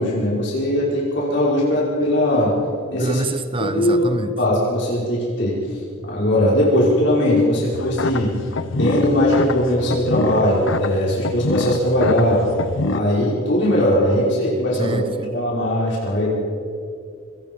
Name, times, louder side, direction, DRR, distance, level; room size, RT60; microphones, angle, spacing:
voice 1, 0.0-2.5 2.9-3.2 3.6-5.6 6.0-8.3 8.8-12.4 12.9-15.0 15.3-16.4, left 1 dB, 65° left, -5 dB, 5.6 m, -19 dB
voice 2, 3.0-4.3 14.8-15.4, right 2 dB, 25° right, 10 dB, 1.2 m, -25 dB
sound 1, 7.7-13.0, left 3 dB, 80° left, 0.9 m, -26 dB
26.0 x 26.0 x 5.5 m, 2.3 s
head